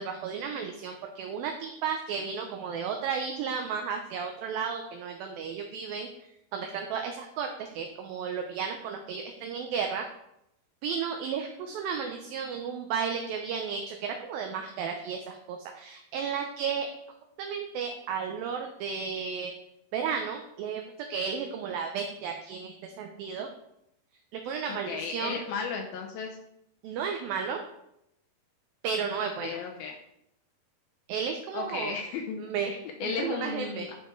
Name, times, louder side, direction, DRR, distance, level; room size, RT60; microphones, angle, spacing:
voice 1, 0.0-6.1 6.5-10.1 10.8-16.9 17.4-19.5 19.9-20.8 21.1-23.5 24.3-25.4 26.8-27.6 28.8-29.6 31.1-31.9 32.4-33.9, right 6 dB, 75° right, 3 dB, 2.4 m, -33 dB
voice 2, 24.7-26.4 29.4-30.0 31.5-32.4 33.0-33.9, left 5 dB, 75° left, 2 dB, 2.5 m, -34 dB
11.5 x 5.1 x 4.5 m, 0.80 s
omnidirectional pair, 4.6 m